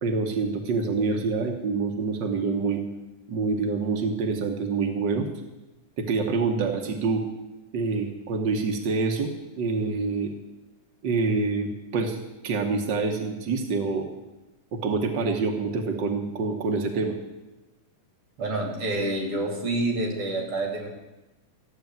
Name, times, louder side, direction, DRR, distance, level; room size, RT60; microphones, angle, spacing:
voice 1, 0.0-2.8 3.3-5.3 6.0-7.2 7.7-9.3 9.6-10.3 11.0-12.2 12.4-14.1 14.7-17.2, right 4 dB, 65° right, 3 dB, 1.1 m, -26 dB
voice 2, 18.4-20.9, right 2 dB, 45° right, 0 dB, 3.4 m, -28 dB
14.0 x 8.4 x 9.2 m, 1.0 s
omnidirectional pair, 3.7 m